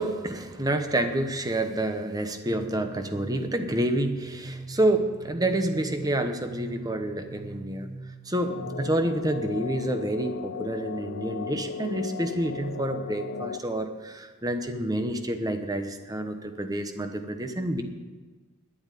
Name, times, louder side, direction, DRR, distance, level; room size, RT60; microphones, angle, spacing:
voice 1, 0.0-7.9 8.2-17.8, right 1 dB, 15° right, 7 dB, 1.0 m, -28 dB
sound 1, 2.5-10.0, right 2 dB, 65° right, 1.1 m, -43 dB
sound 2, 8.4-13.6, left 6 dB, 55° left, 0.4 m, -36 dB
10.5 x 8.8 x 9.1 m, 1.3 s
head